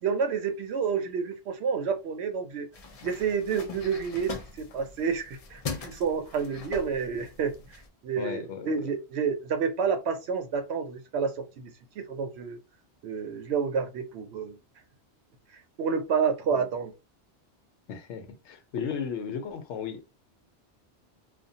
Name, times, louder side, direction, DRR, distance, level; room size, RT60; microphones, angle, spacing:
voice 1, 0.0-2.7 3.0-12.6 13.0-14.6 15.8-16.9, right 6 dB, 75° right, 0.8 m, -29 dB
sound 1, 2.7-7.9, left 5 dB, 50° left, 0.4 m, -41 dB
voice 2, 8.2-8.8 16.6-16.7 17.9-20.1, left 7 dB, 90° left, 0.9 m, -35 dB
2.5 x 2.3 x 2.6 m
omnidirectional pair, 1.1 m